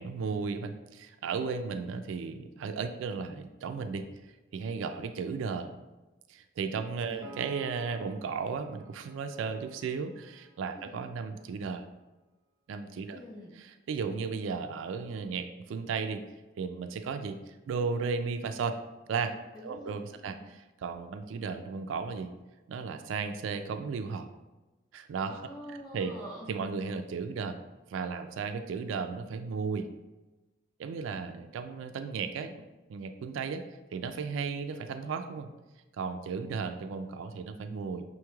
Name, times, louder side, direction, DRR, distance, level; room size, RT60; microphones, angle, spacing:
voice 1, 0.0-4.1 4.5-5.7 6.3-11.8 12.7-13.2 13.6-16.2 16.6-18.8 19.1-19.4 19.6-22.3 22.7-24.3 24.9-25.3 25.7-26.1 26.5-27.6 27.9-29.9 30.8-32.5 32.9-33.6 33.9-35.5 35.9-38.0, right 5 dB, 80° right, 8 dB, 0.3 m, -35 dB
voice 2, 7.0-7.4 10.8-11.0 13.1-13.6 19.5-20.5 25.2-26.5, equal, 20° left, -5 dB, 1.1 m, -46 dB
Piano, 7.2-10.8, right 2 dB, 35° right, 1.1 m, -52 dB
5.7 x 3.1 x 2.3 m, 1.1 s
head